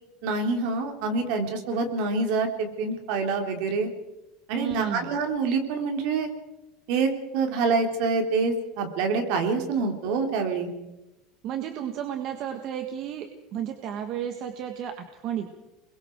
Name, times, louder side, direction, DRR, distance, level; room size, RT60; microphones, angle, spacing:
voice 1, 0.2-3.9 4.5-6.3 6.9-10.7, right 4 dB, 65° right, 4 dB, 3.5 m, -26 dB
voice 2, 4.5-5.2 11.4-15.5, right 9 dB, 45° right, 6 dB, 1.7 m, -32 dB
28.5 x 22.0 x 4.7 m, 1.0 s
cardioid pair, 155°, 0 cm